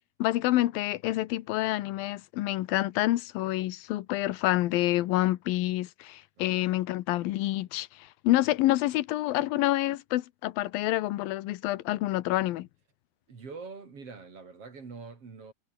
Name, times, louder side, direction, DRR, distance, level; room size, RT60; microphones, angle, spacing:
voice 1, 0.2-12.7, left 16 dB, 80° left, 2.7 m, -28 dB
voice 2, 6.4-6.8 13.3-15.5, right 4 dB, 40° right, 4.5 m, -45 dB
omnidirectional pair, 4.1 m